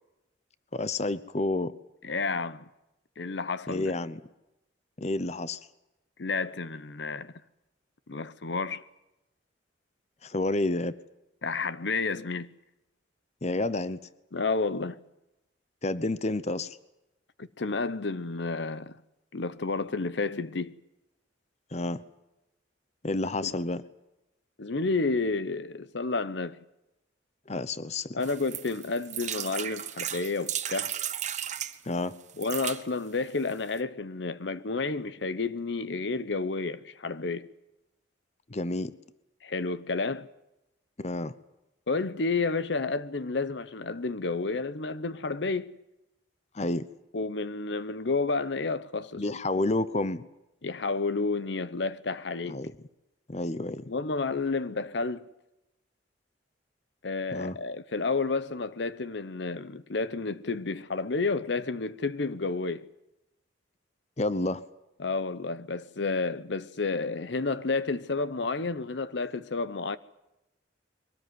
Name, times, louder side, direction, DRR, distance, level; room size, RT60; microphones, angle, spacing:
voice 1, 0.7-1.7 3.7-4.2 5.0-5.6 10.2-10.9 13.4-14.0 15.8-16.8 21.7-22.0 23.0-23.8 27.5-28.1 31.8-32.2 38.5-38.9 41.0-41.3 46.5-46.9 49.2-50.2 52.5-52.7 53.3-53.9 57.3-57.6 64.2-64.6, left 2 dB, 35° left, 0.8 m, -29 dB
voice 2, 2.0-2.7 3.2-3.9 6.2-7.3 8.1-8.8 11.4-12.5 14.3-15.0 17.4-18.9 19.3-20.7 23.4-23.5 24.6-26.6 28.1-30.9 32.4-37.5 39.4-40.3 41.9-45.7 47.1-49.2 50.6-52.6 53.9-55.3 57.0-62.9 65.0-70.0, left 3 dB, 70° left, 0.8 m, -30 dB
sound 1, 28.2-31.8 32.3-32.8 33.5-33.6 33.8-33.9, right 10 dB, 40° right, 1.2 m, -34 dB
23.0 x 18.5 x 9.4 m
head